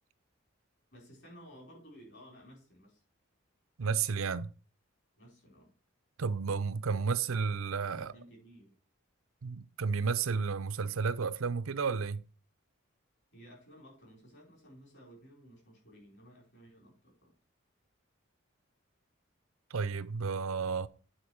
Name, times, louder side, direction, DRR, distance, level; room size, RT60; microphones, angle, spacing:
voice 1, 0.9-3.0 5.2-5.7 7.9-8.7 13.3-17.3, equal, 60° left, 4.3 m, -55 dB
voice 2, 3.8-4.5 6.2-8.1 9.4-12.2 19.7-20.9, right 5 dB, 90° right, 0.6 m, -32 dB
8.8 x 4.4 x 6.2 m
head